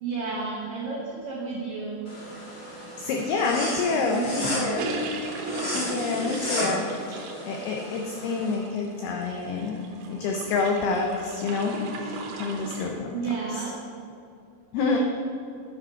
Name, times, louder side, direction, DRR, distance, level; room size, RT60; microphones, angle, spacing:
voice 1, 0.0-2.0 3.9-4.7 13.1-13.7 14.8-15.0, right 4 dB, 90° right, -3 dB, 1.9 m, -32 dB
sound 1, 2.1-8.5, equal, 40° left, 1.3 m, -34 dB
voice 2, 3.0-4.8 5.7-13.1 14.7-15.0, left 4 dB, 85° left, 1 dB, 2.2 m, -28 dB
sound 2, 4.2-12.9, right 2 dB, 75° right, 2.4 m, -37 dB
9.9 x 5.0 x 5.5 m, 2.7 s
omnidirectional pair, 5.4 m